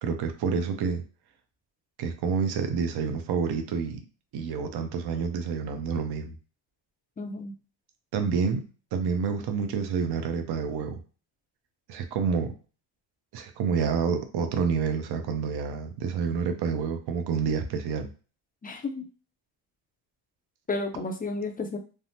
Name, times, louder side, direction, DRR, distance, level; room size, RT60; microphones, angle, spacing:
voice 1, 0.0-1.0 2.0-4.0 4.3-6.3 8.1-8.6 8.9-11.0 11.9-12.5 13.3-18.1, right 6 dB, 55° right, 7 dB, 0.7 m, -28 dB
voice 2, 7.2-7.5 18.6-19.1 20.7-21.8, left 3 dB, 20° left, 4 dB, 0.5 m, -32 dB
3.4 x 2.0 x 2.7 m, 0.35 s
cardioid pair, 95°, 48 cm